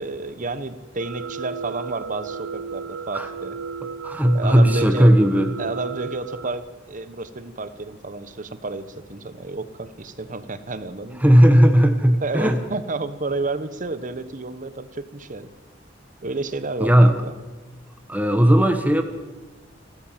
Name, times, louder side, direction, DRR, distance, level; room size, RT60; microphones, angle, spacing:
voice 1, 0.0-3.5 4.3-5.1 5.6-11.3 12.2-15.5 16.2-17.3, right 3 dB, 45° right, 13 dB, 1.1 m, -31 dB
sound 1, 1.0-6.5, right 5 dB, 80° right, 0.7 m, -34 dB
voice 2, 4.0-5.5 11.2-12.6 16.8-17.2 18.1-19.0, equal, 10° right, 6 dB, 1.2 m, -16 dB
29.0 x 13.5 x 7.5 m, 1.2 s
head